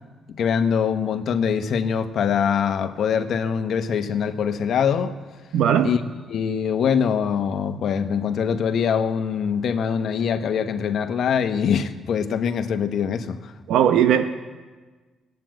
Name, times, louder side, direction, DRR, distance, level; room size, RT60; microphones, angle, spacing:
voice 1, 0.4-5.1 5.8-6.0 6.3-13.5, left 7 dB, 65° left, 1.2 m, -23 dB
voice 2, 5.5-5.9 13.7-14.2, right 9 dB, 80° right, 0.9 m, -18 dB
20.0 x 9.4 x 7.8 m
cardioid pair, 90°, 0 cm